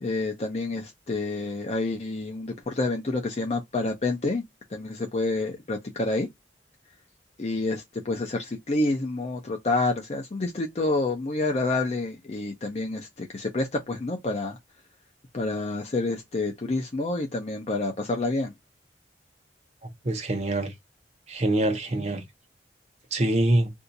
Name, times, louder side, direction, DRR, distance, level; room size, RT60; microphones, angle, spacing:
voice 1, 0.0-4.4 4.7-6.3 7.4-14.6 15.3-18.5, left 2 dB, 40° left, 0.5 m, -28 dB
voice 2, 19.8-20.7 21.3-22.2 23.1-23.7, right 1 dB, 40° right, 0.7 m, -25 dB
2.7 x 2.4 x 3.8 m
head